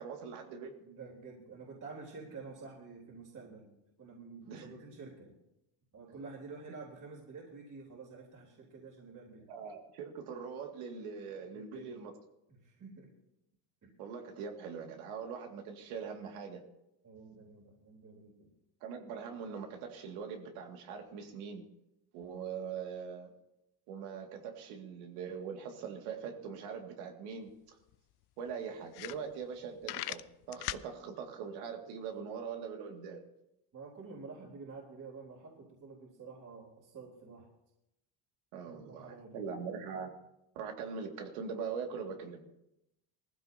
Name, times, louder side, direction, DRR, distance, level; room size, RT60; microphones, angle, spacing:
voice 1, 0.0-0.7 4.5-4.8 9.5-12.1 14.0-16.6 18.8-21.7 22.1-23.3 23.9-27.8 28.4-30.2 30.5-33.2 38.5-40.1 40.6-42.5, right 6 dB, 80° right, 3 dB, 2.4 m, -42 dB
voice 2, 0.8-3.7 4.0-5.3 5.9-9.5 11.5-11.9 12.5-13.1 13.8-13.9 17.0-18.5 33.7-37.5 38.6-39.5, right 4 dB, 35° right, -2 dB, 3.8 m, -49 dB
sound 1, 27.5-27.6 27.9-28.0 28.5-28.6 28.9-29.6 29.8-30.9, left 17 dB, 50° left, 0.6 m, -39 dB
19.5 x 15.0 x 2.9 m, 0.86 s
supercardioid pair, 100°, 49 cm